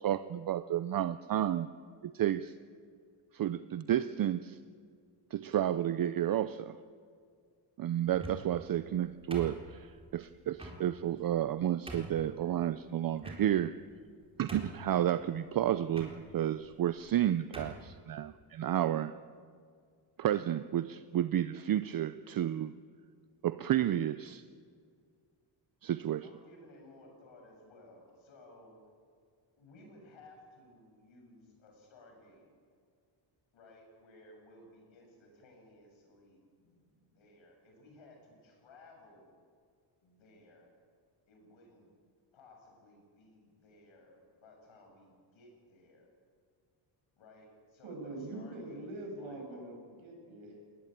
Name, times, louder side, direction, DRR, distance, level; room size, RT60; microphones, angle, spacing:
voice 1, 0.0-1.7 2.0-2.5 3.3-4.6 5.3-6.8 7.8-13.8 14.4-19.1 20.2-22.7 23.4-24.4 25.8-26.3, right 11 dB, 45° right, 14 dB, 0.6 m, -31 dB
sound 1, 8.1-8.6 9.3-10.0 10.6-10.8 11.4-11.5 11.9-12.2 13.2-13.7 14.1-14.2 14.5-15.0 15.9-16.1 17.0-17.1 17.5-17.8, right 1 dB, 10° right, 4.0 m, -44 dB
voice 2, 26.2-28.8 29.6-32.5 33.5-39.4 40.0-40.7 41.3-41.9 42.3-46.1 47.2-49.6, left 2 dB, 70° left, 2 dB, 7.4 m, -58 dB
voice 3, 47.8-50.7, right 2 dB, 75° right, 1 dB, 7.8 m, -43 dB
21.0 x 20.0 x 9.1 m, 2.1 s
cardioid pair, 130°, 48 cm